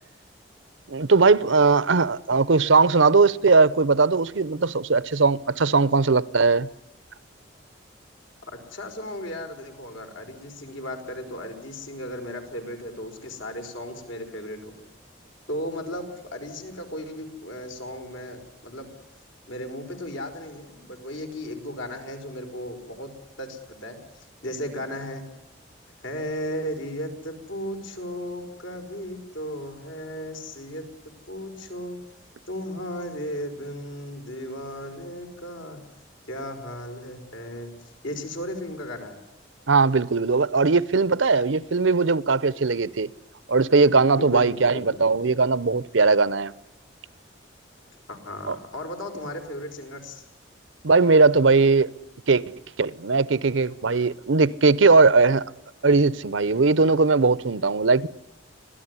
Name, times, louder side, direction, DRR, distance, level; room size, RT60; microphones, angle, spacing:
voice 1, 0.9-6.7 39.7-43.1 43.5-46.5 48.5-48.6 50.8-51.9 52.3-52.4 52.8-55.5 55.8-58.1, right 4 dB, 80° right, 0.8 m, -19 dB
voice 2, 8.4-14.9 15.5-18.9 19.5-23.1 23.4-24.0 24.4-25.2 26.0-30.8 31.3-32.0 32.5-35.8 36.3-39.2 44.2-45.0 48.1-50.2, equal, 85° left, 5.1 m, -35 dB
25.5 x 17.5 x 9.8 m
head